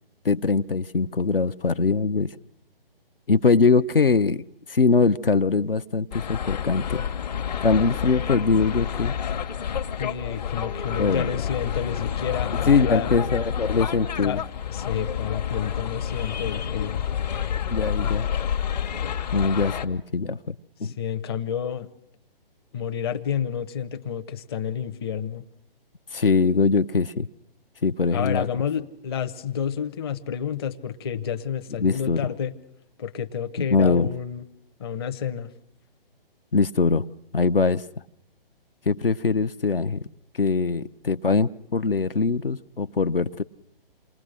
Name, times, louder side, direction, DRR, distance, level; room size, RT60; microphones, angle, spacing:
voice 1, 0.2-2.3 3.3-4.4 4.7-7.0 7.6-9.1 11.0-11.3 12.7-14.4 17.7-18.3 19.3-20.5 20.8-20.9 26.1-27.3 27.8-28.5 31.8-32.2 33.6-34.1 36.5-37.0 37.3-37.8 38.9-40.0 40.4-43.4, left 4 dB, 70° left, 11 dB, 0.8 m, -22 dB
sound 1, 6.1-19.8, left 8 dB, 45° left, 1.2 m, -29 dB
voice 2, 10.0-13.1 14.2-14.4 14.7-17.0 20.8-21.9 22.7-25.4 28.1-32.5 33.0-34.4 34.8-35.5, left 8 dB, 25° left, 9 dB, 0.8 m, -30 dB
28.0 x 19.5 x 6.5 m, 0.78 s
figure-of-eight pair, 135°, 29 cm